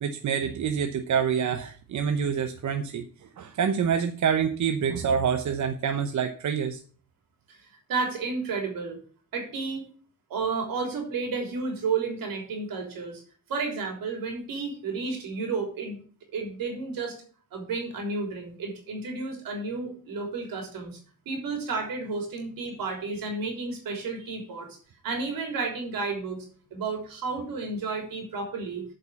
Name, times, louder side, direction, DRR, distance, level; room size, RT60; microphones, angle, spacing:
voice 1, 0.0-3.0 3.4-6.8, right 7 dB, 55° right, 7 dB, 0.9 m, -26 dB
voice 2, 7.5-9.0 9.3-9.9 10.3-13.2 13.5-16.0 16.3-17.1 17.5-21.0 21.2-24.7 25.0-28.8, right 4 dB, 80° right, 2 dB, 3.4 m, -32 dB
8.2 x 5.4 x 7.0 m, 0.43 s
cardioid pair, 85°, 34 cm